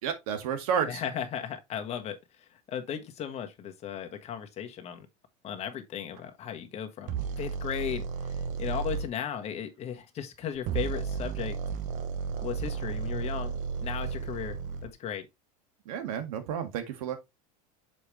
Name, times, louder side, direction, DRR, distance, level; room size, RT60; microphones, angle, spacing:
voice 1, 0.0-1.0 15.9-17.2, right 7 dB, 80° right, 1.9 m, -31 dB
voice 2, 0.9-2.2 2.7-5.1 5.4-8.1 8.6-11.6 12.4-14.6 14.8-15.2, left 9 dB, 35° left, 1.4 m, -36 dB
sound 1, 7.1-9.1 10.5-14.9, right 6 dB, 45° right, 1.1 m, -33 dB
6.9 x 5.0 x 3.2 m
supercardioid pair, 130°, 18 cm